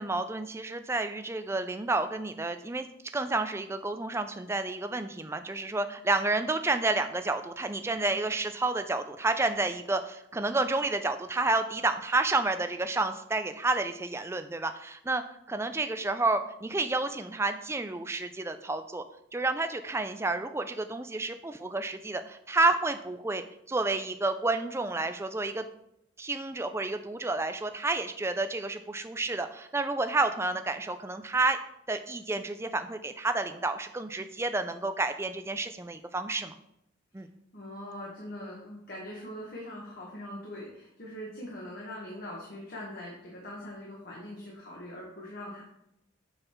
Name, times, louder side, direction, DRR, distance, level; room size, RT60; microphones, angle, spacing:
voice 1, 0.0-2.9 3.1-15.2 15.5-19.0 19.3-25.7 26.2-31.6 31.9-36.5 37.1-37.3, right 2 dB, 15° right, 8 dB, 0.4 m, -30 dB
voice 2, 37.5-45.6, left 1 dB, 50° left, -3 dB, 1.3 m, -42 dB
7.8 x 4.0 x 4.5 m, 0.80 s
head